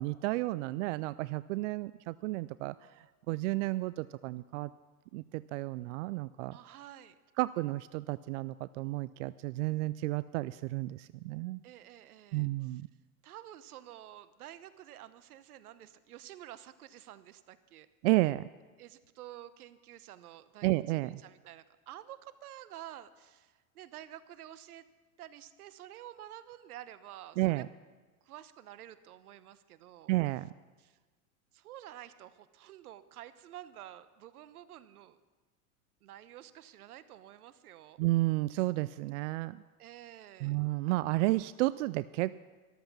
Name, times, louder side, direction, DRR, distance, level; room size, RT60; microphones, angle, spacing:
voice 1, 0.0-2.7 3.3-4.7 5.1-6.6 7.4-11.6 12.3-12.9 18.0-18.5 20.6-21.2 27.4-27.7 30.1-30.5 38.0-39.6 40.4-42.4, right 19 dB, 60° right, 17 dB, 0.5 m, -32 dB
voice 2, 6.5-7.2 11.6-12.8 13.2-17.9 18.8-24.8 25.2-27.6 28.2-30.1 30.8-31.0 31.5-35.2 36.0-38.0 39.8-40.6, right 12 dB, 80° right, 15 dB, 1.0 m, -50 dB
13.5 x 12.5 x 6.1 m, 1.3 s
hypercardioid pair, 105°, 44 cm